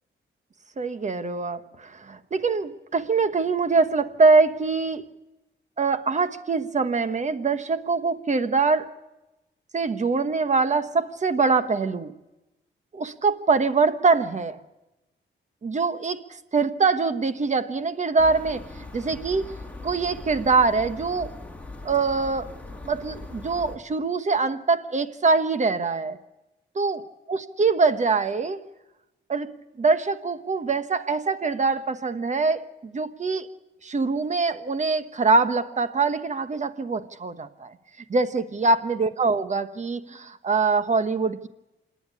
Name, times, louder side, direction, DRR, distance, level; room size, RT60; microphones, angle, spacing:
voice 1, 0.8-5.1 5.8-8.9 9.7-12.2 12.9-14.6 15.6-16.2 16.5-19.6 19.8-21.3 21.8-22.5 22.8-26.2 26.7-27.0 27.3-28.6 29.3-33.5 33.8-37.8 38.1-41.5, right 4 dB, 35° right, 11 dB, 1.2 m, -23 dB
sound 1, 18.2-23.8, left 2 dB, 5° left, 2.3 m, -40 dB
27.0 x 10.5 x 9.7 m, 1.0 s
cardioid pair, 100°, 20 cm